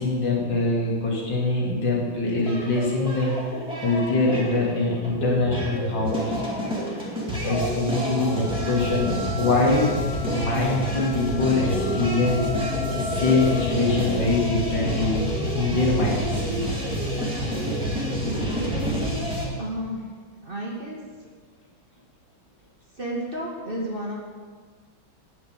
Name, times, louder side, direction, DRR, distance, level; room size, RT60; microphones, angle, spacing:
voice 1, 0.0-3.4 3.8-6.4 6.8-7.0 7.4-9.9 10.3-12.4 12.9-15.2 15.5-16.4, left 3 dB, 70° left, -4 dB, 2.7 m, -24 dB
sound 1, 2.4-19.5, equal, 5° right, 2.2 m, -28 dB
sound 2, 7.1-15.6, left 5 dB, 75° right, 2.9 m, -35 dB
voice 2, 19.2-20.0 20.4-21.0 23.0-24.2, equal, 30° right, -3 dB, 1.6 m, -32 dB
9.8 x 6.3 x 8.1 m, 1.5 s
omnidirectional pair, 2.2 m